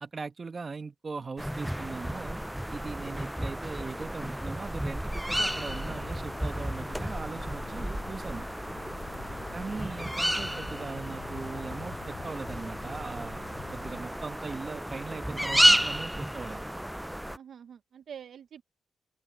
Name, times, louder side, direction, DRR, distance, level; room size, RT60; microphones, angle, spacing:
voice 1, 0.0-2.4 2.7-8.5 9.5-13.5 13.7-16.7, right 4 dB, 35° right, 1.5 m, -40 dB
sound 1, 1.4-17.4, equal, 5° right, 0.3 m, -31 dB
sound 2, 5.4-14.0, left 9 dB, 80° left, 2.8 m, -47 dB
voice 2, 9.0-9.6 17.3-18.6, right 8 dB, 65° right, 0.7 m, -47 dB
open air
cardioid pair, 95°, 0 cm